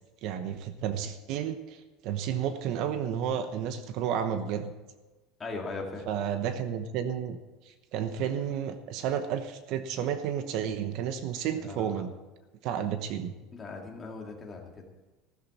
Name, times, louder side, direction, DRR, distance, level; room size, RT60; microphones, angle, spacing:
voice 1, 0.2-4.7 6.1-7.4 7.7-12.1 12.6-13.3, right 9 dB, 50° right, 9 dB, 1.0 m, -32 dB
voice 2, 5.4-6.1 11.6-12.0 13.5-14.9, left 3 dB, 15° left, 0 dB, 2.3 m, -39 dB
15.0 x 13.5 x 4.3 m, 1.2 s
cardioid pair, 170°, 0 cm